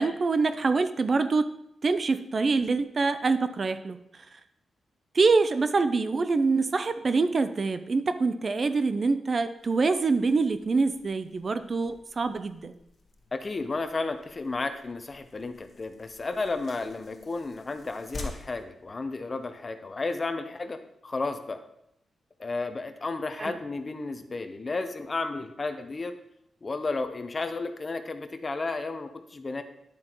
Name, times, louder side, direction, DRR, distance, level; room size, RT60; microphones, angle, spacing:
voice 1, 0.0-1.5 1.8-4.3 5.1-12.7 23.4-23.5, right 4 dB, 40° right, 11 dB, 0.4 m, -25 dB
sound 1, 9.6-19.7, left 3 dB, 50° left, 1.3 m, -48 dB
voice 2, 13.3-21.6 22.4-26.1 26.6-29.6, left 3 dB, 30° left, 8 dB, 0.7 m, -33 dB
9.9 x 7.6 x 3.0 m, 0.76 s
wide cardioid pair, 110°, 0 cm